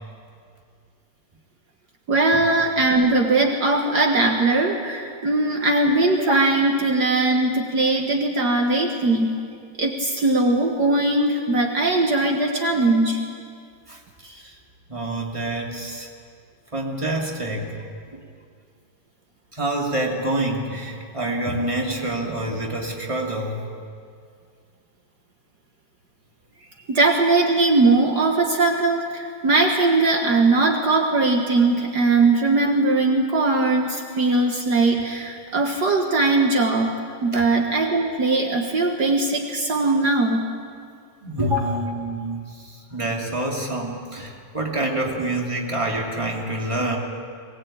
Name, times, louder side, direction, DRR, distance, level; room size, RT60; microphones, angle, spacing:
voice 1, 2.1-9.4 9.8-13.2 26.9-40.5 41.5-41.7, right 2 dB, 60° right, 1 dB, 2.1 m, -20 dB
voice 2, 13.9-14.5 14.9-16.1 16.7-17.7 19.5-23.6 37.3-37.4 41.2-47.0, right 1 dB, 15° right, -1 dB, 2.9 m, -27 dB
22.5 x 19.5 x 8.8 m, 2.3 s
omnidirectional pair, 2.0 m